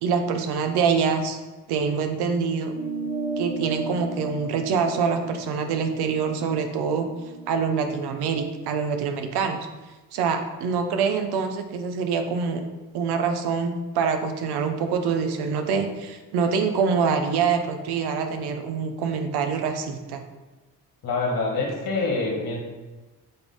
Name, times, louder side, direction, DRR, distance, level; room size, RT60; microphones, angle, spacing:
voice 1, 0.0-1.4 1.7-2.7 3.4-7.1 7.5-9.6 10.1-12.6 12.9-20.2, right 5 dB, 90° right, 6 dB, 0.8 m, -25 dB
sound 1, 2.7-7.5, right 3 dB, 45° right, 0.8 m, -34 dB
voice 2, 21.0-22.6, left 3 dB, 65° left, -1 dB, 2.1 m, -26 dB
7.8 x 3.6 x 4.0 m, 1.2 s
cardioid pair, 70°, 38 cm